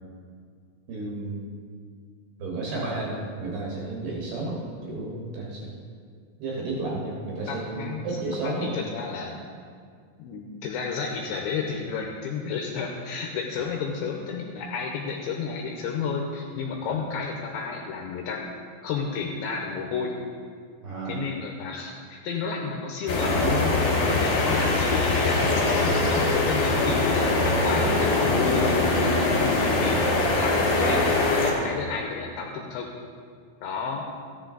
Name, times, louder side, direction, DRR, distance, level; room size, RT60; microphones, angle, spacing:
voice 1, 0.9-1.6 2.4-5.7 6.4-8.8 13.6-13.7 16.8-17.0 20.8-21.3 23.2-24.2 29.7-30.0, right 2 dB, 65° right, -3 dB, 2.8 m, -32 dB
voice 2, 7.5-8.1 8.4-9.4 10.2-18.4 18.8-20.1 21.1-23.8 24.1-32.9 33.6-34.0, left 5 dB, 80° left, 1 dB, 2.7 m, -32 dB
sound 1, 23.1-31.5, left 2 dB, 50° left, 3.3 m, -22 dB
14.0 x 10.0 x 3.9 m, 2.1 s
omnidirectional pair, 5.9 m